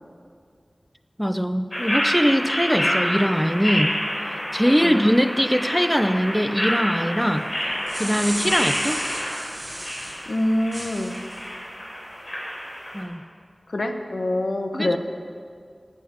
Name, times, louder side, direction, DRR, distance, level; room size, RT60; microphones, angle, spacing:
voice 1, 1.2-4.0 4.5-7.5 8.0-9.0 12.9-13.2 14.7-15.0, equal, ahead, 10 dB, 0.7 m, -21 dB
sound 1, 1.7-13.0, equal, 40° left, 3.7 m, -28 dB
voice 2, 4.6-5.0 8.4-8.5 10.3-11.1 13.7-15.0, left 1 dB, 70° left, 6 dB, 1.0 m, -25 dB
sound 2, 7.6-10.2 10.7-11.4, right 1 dB, 30° right, 3.5 m, -33 dB
9.4 x 9.2 x 8.0 m, 2.1 s
wide cardioid pair, 40°, 0 cm